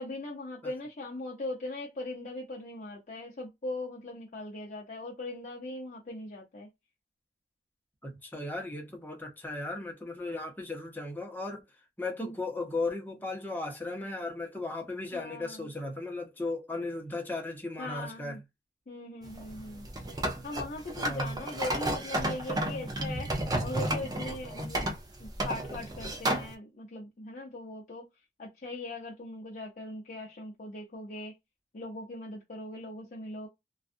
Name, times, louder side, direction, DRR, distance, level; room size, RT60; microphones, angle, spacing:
voice 1, 0.0-6.7 15.1-15.7 17.8-18.4 18.9-19.9 20.1-24.9 25.2-28.1 28.4-31.3 31.7-33.5, left 2 dB, 45° left, 0.6 m, -40 dB
voice 2, 8.0-11.6 12.0-18.4 21.1-21.4, left 2 dB, 10° left, 0.8 m, -36 dB
sound 1, 19.2-26.5, right 1 dB, 20° right, 0.5 m, -32 dB
2.5 x 2.3 x 2.5 m
head